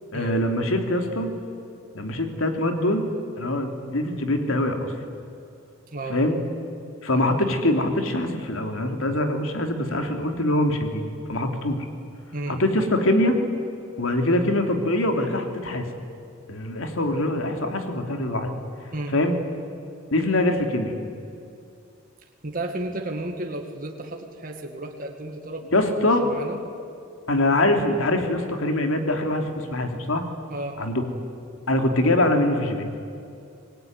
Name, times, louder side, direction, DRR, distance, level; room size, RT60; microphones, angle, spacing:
voice 1, 0.1-1.3 1.9-3.0 3.4-4.9 6.1-6.4 7.0-11.0 11.3-11.8 12.5-13.4 14.0-15.8 16.5-18.5 19.1-19.4 20.1-21.0 25.7-26.2 27.3-30.2 30.8-31.0 31.7-32.9, left 1 dB, 80° left, 5 dB, 3.0 m, -23 dB
voice 2, 22.4-25.8 26.2-26.6 30.5-30.8, right 2 dB, 40° right, 2 dB, 2.1 m, -33 dB
25.5 x 20.5 x 9.6 m, 2.5 s
head